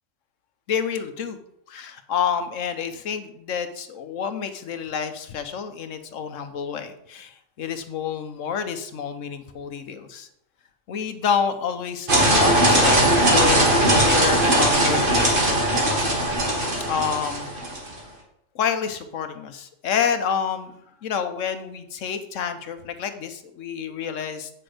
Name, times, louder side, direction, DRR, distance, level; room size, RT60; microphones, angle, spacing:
voice 1, 0.7-1.4 1.7-10.3 10.9-13.6 13.9-15.4 16.9-17.5 18.5-20.7 21.0-24.5, left 7 dB, 80° left, 9 dB, 1.2 m, -28 dB
sound 1, 12.1-17.9, right 1 dB, 45° right, 1.9 m, -19 dB
8.8 x 6.1 x 5.0 m, 0.76 s
omnidirectional pair, 1.3 m